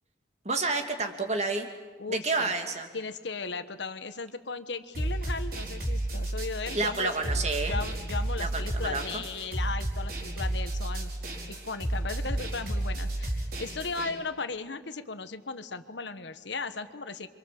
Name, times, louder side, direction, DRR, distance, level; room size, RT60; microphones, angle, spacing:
voice 1, 0.4-1.7 2.1-2.9 6.7-7.8 8.4-9.2, right 3 dB, 40° right, 5 dB, 2.6 m, -30 dB
voice 2, 2.0-2.5 2.9-7.4 7.7-11.1 11.5-17.3, left 4 dB, 75° left, 10 dB, 1.4 m, -36 dB
sound 1, 4.9-14.1, right 1 dB, 55° right, 5.0 m, -32 dB
28.0 x 25.5 x 7.8 m, 1.4 s
head